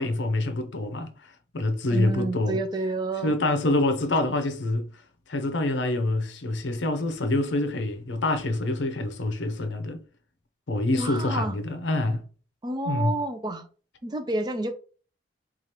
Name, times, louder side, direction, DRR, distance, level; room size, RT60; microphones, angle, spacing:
voice 1, 0.0-2.6 3.2-4.9 5.3-10.0 10.7-12.2 12.8-13.1, left 2 dB, 70° left, 0.7 m, -26 dB
voice 2, 1.9-3.3 10.9-11.6 12.6-13.7 14.0-14.7, right 2 dB, 20° right, 0.4 m, -29 dB
4.8 x 2.4 x 2.9 m
head